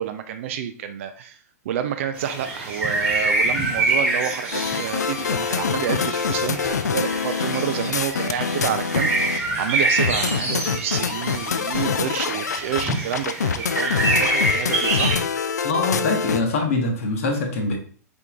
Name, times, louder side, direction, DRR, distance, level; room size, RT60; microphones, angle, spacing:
voice 1, 0.0-1.4 1.7-15.1, right 9 dB, 45° right, 8 dB, 0.4 m, -29 dB
sound 1, 2.2-15.2, right 2 dB, 15° right, 1.4 m, -26 dB
sound 2, 4.5-9.4 10.0-16.4, left 6 dB, 70° left, 0.4 m, -25 dB
voice 2, 15.6-17.8, left 3 dB, 50° left, 2 dB, 1.0 m, -23 dB
4.3 x 3.5 x 3.5 m, 0.43 s
figure-of-eight pair, 105°, 9 cm